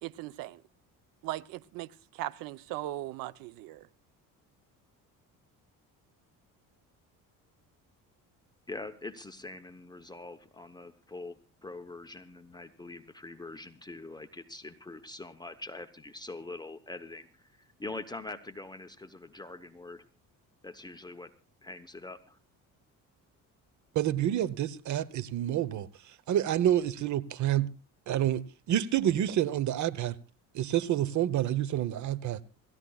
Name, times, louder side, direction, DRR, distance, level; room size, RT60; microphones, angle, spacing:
voice 1, 0.0-0.6 1.2-3.9, right 15 dB, 90° right, 0.8 m, -38 dB
voice 2, 8.7-11.4 11.6-20.0 20.6-21.3 21.6-22.4, left 2 dB, 10° left, 0.9 m, -43 dB
voice 3, 23.9-25.9 26.3-27.7 28.1-30.1 30.5-32.4, right 11 dB, 60° right, 1.0 m, -28 dB
27.5 x 14.5 x 2.4 m
cardioid pair, 120°, 34 cm